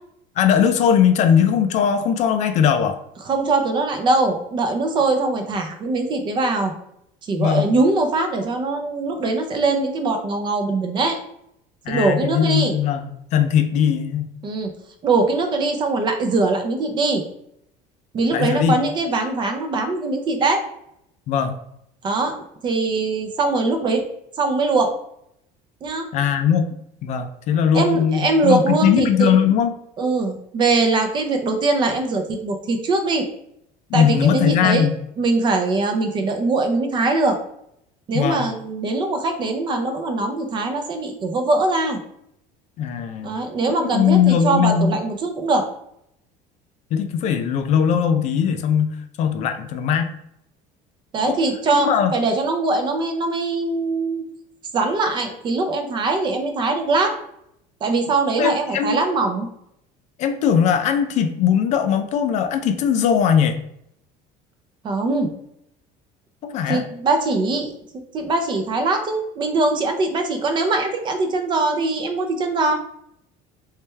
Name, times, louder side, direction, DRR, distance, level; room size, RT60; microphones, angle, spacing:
voice 1, 0.4-3.0 7.4-7.7 11.9-14.3 18.3-18.8 21.3-21.5 26.1-26.7 27.0-29.7 33.9-35.0 38.1-38.5 42.8-43.3 43.9-45.0 46.9-50.2 51.3-51.4 51.7-52.1 58.4-59.0 60.2-63.6 66.4-66.8, left 8 dB, 45° left, 8 dB, 0.4 m, -19 dB
voice 2, 3.3-6.7 7.2-11.2 11.9-12.8 14.4-14.7 15.0-17.2 18.1-20.6 22.0-22.3 22.6-24.0 24.4-24.9 25.8-26.1 27.7-29.4 30.0-33.3 33.9-34.8 35.2-37.4 38.1-42.0 43.2-45.6 51.1-54.2 54.7-57.1 57.8-59.5 64.8-65.3 66.7-67.7 68.1-72.7, right 3 dB, 30° right, 5 dB, 0.5 m, -21 dB
3.2 x 3.2 x 3.3 m, 0.74 s
cardioid pair, 165°, 17 cm